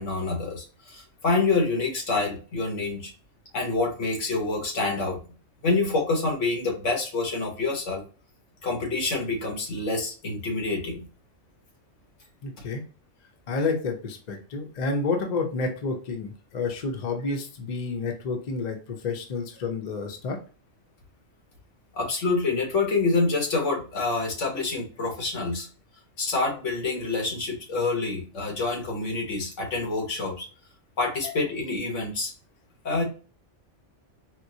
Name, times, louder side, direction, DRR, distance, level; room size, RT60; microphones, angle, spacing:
voice 1, 0.0-3.1 3.5-5.2 5.6-8.0 8.6-11.0 21.9-25.7 26.2-30.5 31.0-32.3 32.8-33.0, left 3 dB, 85° left, 0 dB, 1.4 m, -27 dB
voice 2, 12.4-12.8 13.5-20.4, left 3 dB, 45° left, 3 dB, 0.7 m, -30 dB
4.3 x 2.0 x 2.6 m, 0.37 s
omnidirectional pair, 1.2 m